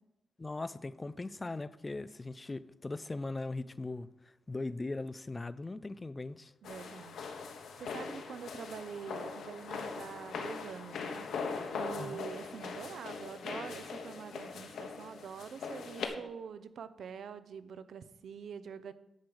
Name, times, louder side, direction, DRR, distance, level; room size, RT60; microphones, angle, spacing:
voice 1, 0.4-4.1 4.5-6.5 12.0-12.2, left 2 dB, 15° left, 0.3 m, -39 dB
sound 1, 6.6-16.1, left 5 dB, 75° left, 1.2 m, -41 dB
voice 2, 6.6-7.2 7.5-18.9, right 7 dB, 60° right, 0.6 m, -45 dB
10.5 x 4.9 x 7.8 m
wide cardioid pair, 180°, 0 cm